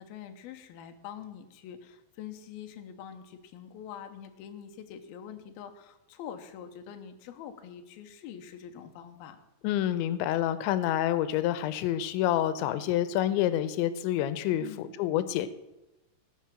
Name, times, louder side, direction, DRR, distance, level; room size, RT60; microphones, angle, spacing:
voice 1, 0.0-9.4 14.6-14.9, left 8 dB, 70° left, 6 dB, 2.6 m, -45 dB
voice 2, 9.6-15.5, left 12 dB, 90° left, 13 dB, 3.0 m, -28 dB
18.0 x 6.0 x 7.5 m, 1.0 s
omnidirectional pair, 5.1 m